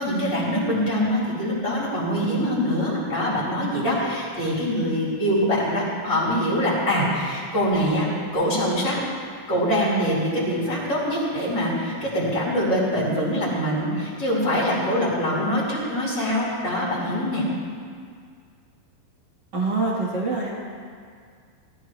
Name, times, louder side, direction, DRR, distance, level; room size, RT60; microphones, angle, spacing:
voice 1, 0.0-8.1 8.3-9.0 9.5-17.4, equal, 30° left, -7 dB, 4.4 m, -24 dB
voice 2, 19.5-20.5, right 3 dB, 55° right, -4 dB, 1.2 m, -25 dB
19.0 x 14.5 x 3.1 m, 2.1 s
omnidirectional pair, 4.4 m